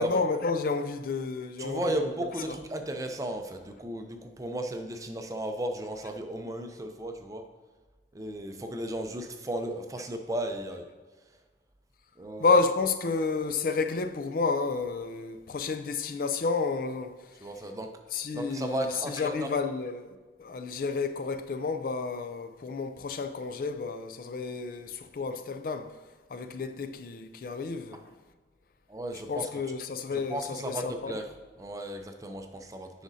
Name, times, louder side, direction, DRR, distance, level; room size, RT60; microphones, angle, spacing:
voice 1, 0.0-2.6 12.4-17.1 18.1-25.9 26.3-28.0 29.1-31.2, left 4 dB, 50° left, 0.3 m, -30 dB
voice 2, 1.6-7.5 8.1-10.8 12.2-12.6 17.4-17.9 18.3-19.5 28.9-29.5 30.1-31.3 31.6-33.0, right 1 dB, 20° right, 0.5 m, -35 dB
9.9 x 5.0 x 2.7 m
head